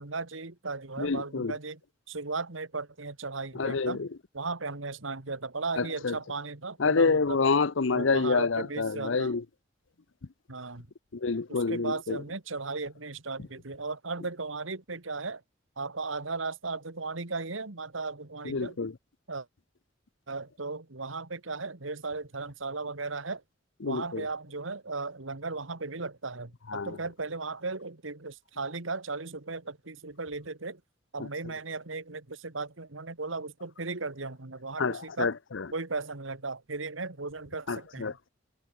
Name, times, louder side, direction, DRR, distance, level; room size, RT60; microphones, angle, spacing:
voice 1, 0.0-1.8 2.1-4.0 4.3-7.4 7.9-9.3 10.5-10.9 11.5-15.4 15.8-18.8 19.3-19.5 20.3-23.4 23.8-30.8 31.1-35.3 35.7-38.2, right 3 dB, 80° right, 2.0 m, -36 dB
voice 2, 1.0-1.5 3.5-4.1 5.8-6.2 6.8-9.4 11.1-12.2 18.4-18.9 23.8-24.3 26.7-27.0 34.8-35.7 37.7-38.3, left 4 dB, 70° left, 0.7 m, -28 dB
head